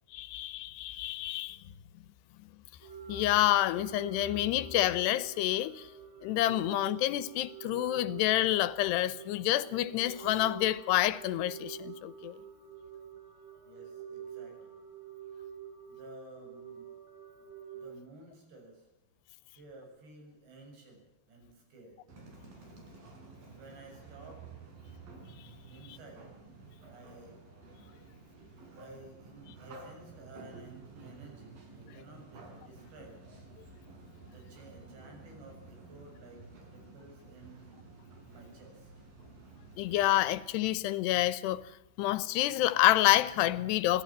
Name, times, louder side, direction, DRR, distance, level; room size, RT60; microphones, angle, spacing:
voice 1, 0.1-1.6 3.1-5.7 6.2-12.3 39.8-41.6 42.0-44.0, left 14 dB, 80° left, 3.0 m, -28 dB
sound 1, 2.8-17.9, right 8 dB, 35° right, 5.8 m, -47 dB
voice 2, 13.6-14.8 15.9-16.9 17.4-17.5 17.7-18.9 19.4-22.0 23.5-24.5 25.7-26.3 26.9-27.4 28.7-33.2 34.2-37.7 38.3-38.9, right 2 dB, 85° right, 9.7 m, -53 dB
sound 2, 22.1-40.4, right 3 dB, 55° right, 6.8 m, -52 dB
26.0 x 17.0 x 7.4 m
omnidirectional pair, 4.9 m